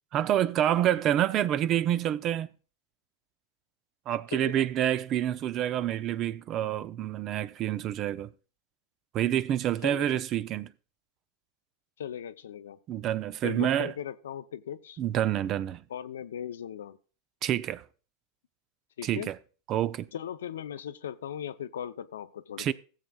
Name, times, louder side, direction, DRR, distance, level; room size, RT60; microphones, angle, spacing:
voice 1, 0.1-2.5 4.1-8.3 9.1-10.7 12.9-13.9 15.0-15.8 17.4-17.8 19.0-19.4 19.7-20.1 22.6-22.7, right 11 dB, 40° right, 0.6 m, -27 dB
voice 2, 4.3-4.6 9.8-10.2 12.0-12.8 13.4-15.0 15.9-17.0 19.0-19.3 20.1-22.7, left 9 dB, 80° left, 0.6 m, -38 dB
16.5 x 7.4 x 2.3 m
hypercardioid pair, 100°, 0 cm